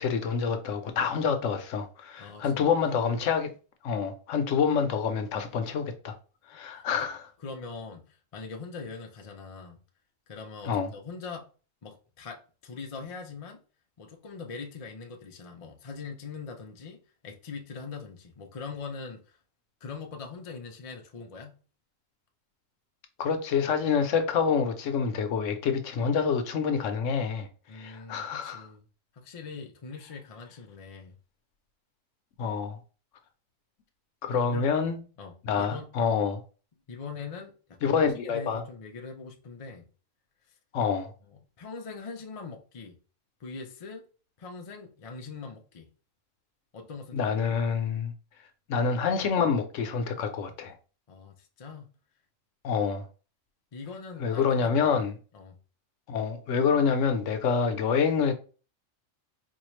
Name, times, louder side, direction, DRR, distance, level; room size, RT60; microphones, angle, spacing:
voice 1, 0.0-3.5 3.8-6.2 6.5-7.3 10.6-10.9 23.2-27.5 27.7-28.7 32.4-32.8 34.2-35.0 35.4-36.4 37.8-38.6 40.7-41.1 47.1-48.1 48.7-50.8 52.6-53.0 54.2-55.1 56.1-58.3, left 6 dB, 70° left, 0.9 m, -27 dB
voice 2, 2.2-3.0 7.0-7.1 7.4-9.8 10.3-11.5 11.8-13.6 14.0-19.4 19.8-21.6 27.7-28.8 29.2-31.1 34.3-34.7 35.2-36.3 36.9-39.9 40.8-41.0 41.3-43.0 43.4-44.1 44.4-45.9 46.7-47.3 51.1-51.9 53.7-55.0 55.3-55.6, left 4 dB, 50° left, 0.4 m, -42 dB
4.3 x 2.3 x 3.1 m
omnidirectional pair, 1.4 m